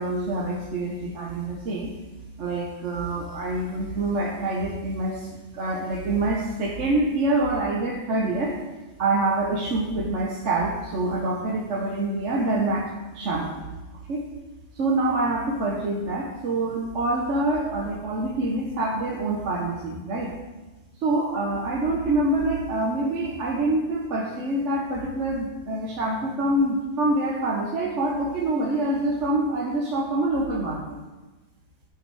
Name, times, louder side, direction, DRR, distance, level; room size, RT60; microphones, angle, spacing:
voice 1, 0.0-1.9 2.4-8.6 9.0-13.7 14.1-14.3 14.7-20.3 21.0-31.0, right 2 dB, 70° right, -2 dB, 1.3 m, -26 dB
11.0 x 4.8 x 4.7 m, 1.2 s
omnidirectional pair, 1.3 m